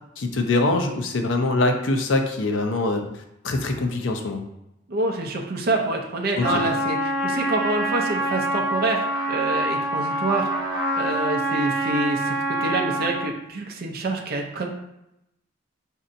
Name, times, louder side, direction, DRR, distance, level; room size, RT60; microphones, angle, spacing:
voice 1, 0.2-4.4 6.4-6.6, left 2 dB, 65° left, 5 dB, 0.5 m, -24 dB
voice 2, 4.9-10.5 10.9-14.7, right 2 dB, 50° right, 1 dB, 0.5 m, -26 dB
Trumpet, 6.4-13.3, right 1 dB, 5° left, 1.5 m, -26 dB
5.2 x 2.7 x 2.5 m, 0.85 s
head